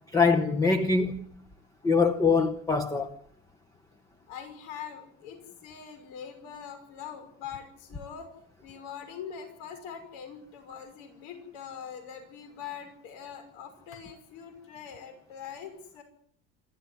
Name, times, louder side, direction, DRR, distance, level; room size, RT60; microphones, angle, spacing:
voice 1, 0.1-1.3 1.8-3.1, left 4 dB, 10° left, 0.9 m, -23 dB
voice 2, 4.3-8.3 8.6-16.0, left 8 dB, 75° left, 6.0 m, -43 dB
28.0 x 13.5 x 9.7 m
cardioid pair, 170°, 36 cm